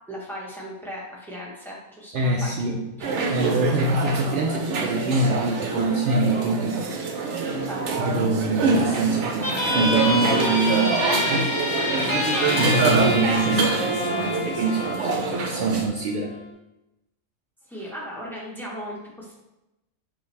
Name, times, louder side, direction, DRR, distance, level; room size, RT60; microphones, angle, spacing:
voice 1, 0.1-2.7 7.6-8.1 17.6-19.3, equal, ahead, -5 dB, 0.9 m, -37 dB
voice 2, 2.1-2.9 3.3-7.0 8.0-11.5 12.6-16.3, right 3 dB, 85° right, 0 dB, 0.4 m, -25 dB
sound 1, 3.0-15.9, right 3 dB, 65° right, 0.9 m, -26 dB
sound 2, 9.4-16.4, left 1 dB, 25° left, 0.4 m, -27 dB
5.4 x 2.7 x 3.3 m, 0.92 s
omnidirectional pair, 1.5 m